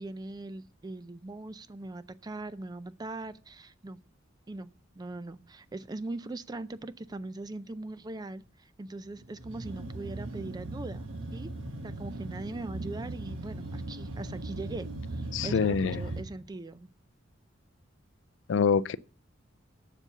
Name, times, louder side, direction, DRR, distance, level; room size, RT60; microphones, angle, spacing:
voice 1, 0.0-4.0 4.5-4.7 5.0-11.5 11.8-16.9, right 2 dB, 20° right, 0.4 m, -41 dB
sound 1, 9.2-16.2, right 2 dB, 80° right, 1.3 m, -38 dB
voice 2, 15.3-16.0 18.5-19.0, left 6 dB, 65° left, 0.4 m, -25 dB
7.2 x 7.0 x 6.7 m
head